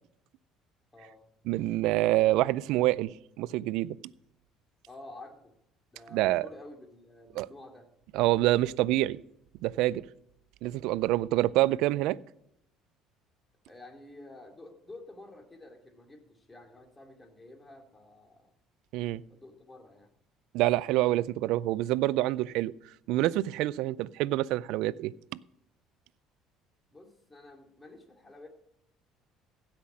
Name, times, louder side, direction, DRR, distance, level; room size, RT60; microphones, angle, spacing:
voice 1, 0.9-1.2 4.9-5.5 5.9-7.9 13.6-18.5 19.3-20.1 26.9-28.5, left 2 dB, 20° left, 2.5 m, -50 dB
voice 2, 1.5-3.1 3.4-4.0 6.1-6.5 7.4-7.5 8.1-9.2 9.6-10.0 10.6-12.2 18.9-19.2 20.5-22.7 23.1-25.1, right 16 dB, 75° right, 0.3 m, -26 dB
16.0 x 5.9 x 6.1 m
supercardioid pair, 85°, 0 cm